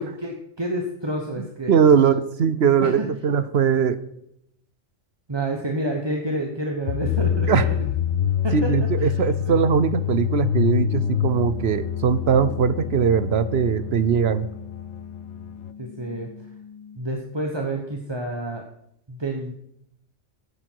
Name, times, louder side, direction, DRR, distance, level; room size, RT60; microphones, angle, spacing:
voice 1, 0.0-2.0 2.8-3.1 5.3-7.9 8.4-9.6 15.8-16.3 16.9-18.6 19.1-19.5, right 1 dB, 20° right, 2 dB, 1.1 m, -29 dB
voice 2, 1.4-4.0 7.5-7.6 8.5-14.5, right 7 dB, 60° right, 13 dB, 0.9 m, -20 dB
sound 1, 6.9-15.7, left 10 dB, 65° left, 0.9 m, -26 dB
sound 2, 10.8-17.0, left 6 dB, 30° left, 4.2 m, -42 dB
14.5 x 9.9 x 4.7 m, 0.77 s
omnidirectional pair, 1.3 m